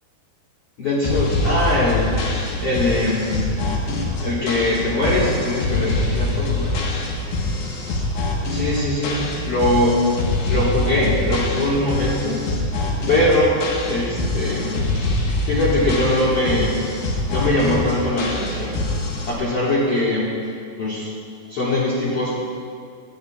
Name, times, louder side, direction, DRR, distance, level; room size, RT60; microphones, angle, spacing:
voice 1, 0.8-3.6 4.2-6.9 8.5-10.0 10.5-12.5 13.0-13.6 13.9-16.8 17.3-18.9 19.3-20.3 20.8-21.1 21.5-22.3, left 1 dB, 50° left, -7 dB, 1.9 m, -22 dB
sound 1, 1.0-19.3, left 2 dB, 70° left, 3.0 m, -24 dB
19.0 x 11.5 x 2.4 m, 2.1 s
omnidirectional pair, 4.8 m